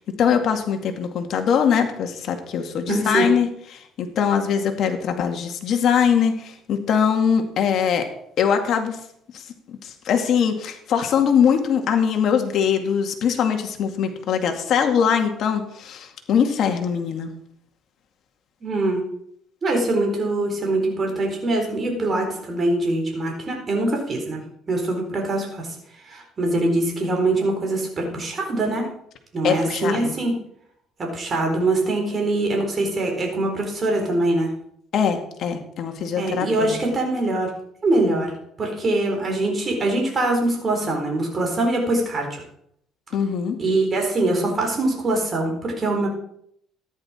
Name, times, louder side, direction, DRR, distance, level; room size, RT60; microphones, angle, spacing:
voice 1, 0.2-8.1 8.4-9.0 9.3-17.3 29.4-30.2 34.9-36.8 43.1-43.6, left 7 dB, 60° left, 5 dB, 2.1 m, -22 dB
voice 2, 2.9-3.3 18.6-19.0 19.6-24.4 24.7-25.7 26.1-28.9 29.3-30.3 31.0-34.5 36.1-37.5 37.8-38.3 38.6-42.4 43.6-46.1, right 2 dB, 35° right, 1 dB, 4.1 m, -23 dB
13.5 x 10.5 x 4.4 m, 0.71 s
cardioid pair, 115°, 0 cm